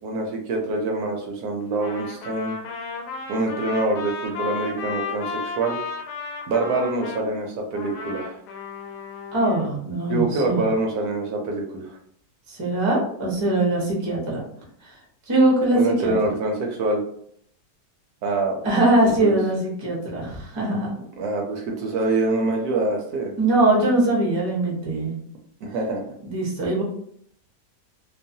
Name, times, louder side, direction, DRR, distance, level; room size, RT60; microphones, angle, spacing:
voice 1, 0.0-2.6 3.3-5.8 6.5-8.4 10.1-11.9 15.7-17.0 18.2-18.6 19.2-19.4 21.2-23.3 25.6-26.0, right 2 dB, 70° right, 1 dB, 1.0 m, -25 dB
Trumpet, 1.7-7.2 7.7-9.7, left 5 dB, 75° left, 1.1 m, -34 dB
voice 2, 9.3-10.6 12.5-14.4 14.8-15.0 15.3-16.1 18.6-20.9 23.4-25.1 26.2-26.8, right 1 dB, 40° right, -3 dB, 0.3 m, -21 dB
3.0 x 2.0 x 2.6 m, 0.66 s
omnidirectional pair, 1.8 m